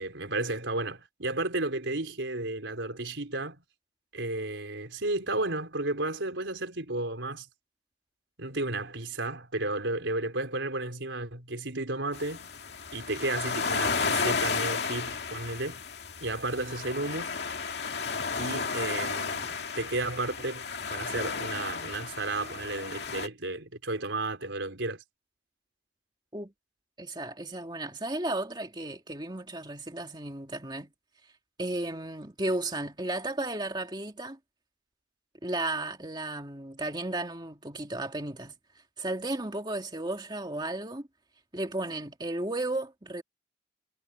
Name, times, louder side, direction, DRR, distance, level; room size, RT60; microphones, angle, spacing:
voice 1, 0.0-3.6 4.1-7.5 8.4-12.5 12.9-15.8 16.2-17.4 18.4-25.0, right 2 dB, 90° right, 4.6 m, -33 dB
sound 1, 12.1-23.3, left 5 dB, 65° left, 2.4 m, -33 dB
voice 2, 27.0-30.9 31.6-34.4 35.4-38.5 39.0-41.1 41.5-43.2, right 2 dB, 25° right, 2.5 m, -34 dB
head